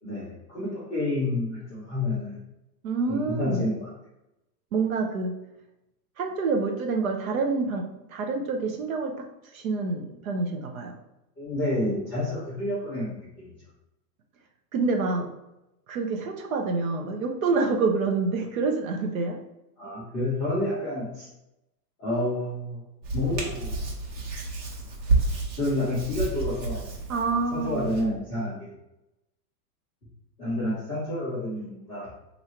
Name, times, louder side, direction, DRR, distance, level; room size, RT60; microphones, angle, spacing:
voice 1, 0.0-2.4 3.1-3.9 11.4-13.5 19.8-21.3 22.0-22.8 23.1-23.8 24.4-24.5 25.6-26.8 27.5-28.7 30.4-32.1, left 1 dB, 5° left, -19 dB, 0.5 m, -29 dB
voice 2, 2.8-3.6 4.7-5.4 6.2-9.3 9.5-11.0 14.7-15.3 15.9-19.4 27.1-27.8, right 4 dB, 55° right, 4 dB, 0.6 m, -27 dB
Hands, 23.0-28.0, right 3 dB, 85° right, 1.3 m, -30 dB
2.9 x 2.7 x 4.3 m, 0.91 s
supercardioid pair, 175°, 49 cm